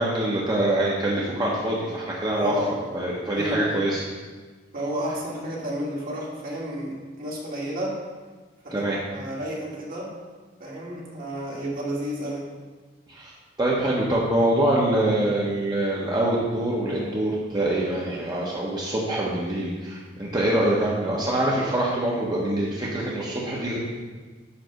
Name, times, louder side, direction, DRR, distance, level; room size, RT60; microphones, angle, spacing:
voice 1, 0.0-2.5 2.9-4.0 8.7-9.0 13.1-13.3 13.6-23.8, right 1 dB, 20° right, -5 dB, 1.1 m, -24 dB
voice 2, 2.4-2.7 3.3-3.8 4.7-8.0 8.6-10.1 10.6-12.4, equal, 50° right, -4 dB, 1.9 m, -31 dB
9.8 x 3.4 x 6.5 m, 1.4 s
head